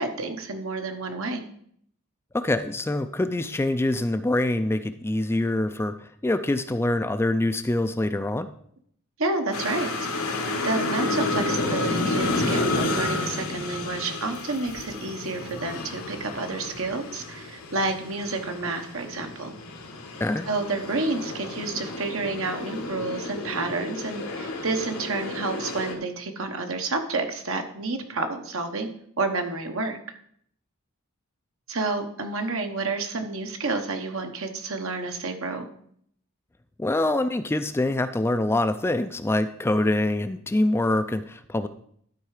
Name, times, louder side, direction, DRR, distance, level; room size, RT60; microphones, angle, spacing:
voice 1, 0.0-1.4 9.2-10.1 10.6-19.5 20.5-28.9 29.2-30.0 31.7-35.7, right 3 dB, 65° right, 5 dB, 1.1 m, -29 dB
voice 2, 2.3-8.5 20.2-20.5 36.8-41.7, left 1 dB, 10° left, 10 dB, 0.3 m, -25 dB
sound 1, 9.5-25.9, left 2 dB, 75° left, 1.5 m, -31 dB
12.0 x 4.7 x 4.8 m, 0.65 s
head